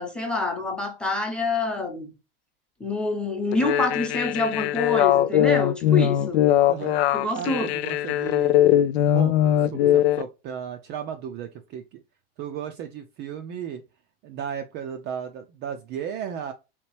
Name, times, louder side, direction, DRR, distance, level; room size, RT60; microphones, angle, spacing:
voice 1, 0.0-2.1 2.8-6.4 7.1-7.7, left 3 dB, 5° left, 0.9 m, -27 dB
sound 1, 3.5-10.2, left 11 dB, 85° left, 0.5 m, -21 dB
voice 2, 7.3-8.6 9.0-12.0 12.4-13.8 14.2-16.5, right 8 dB, 35° right, 0.4 m, -35 dB
3.5 x 2.9 x 3.1 m
supercardioid pair, 130°, 31 cm